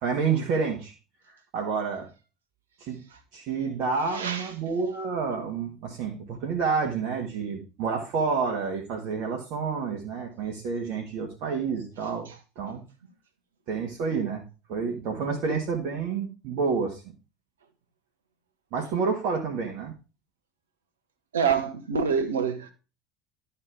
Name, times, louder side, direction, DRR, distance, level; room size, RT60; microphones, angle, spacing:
voice 1, 0.0-0.9 1.5-2.1 2.8-3.0 3.3-12.3 12.5-12.8 13.7-14.4 14.7-17.0 18.7-19.9, right 5 dB, 50° right, 1.6 m, -29 dB
voice 2, 4.1-4.5 21.3-22.7, right 6 dB, 75° right, 1.2 m, -26 dB
12.5 x 5.7 x 3.6 m
figure-of-eight pair, 70°, 0 cm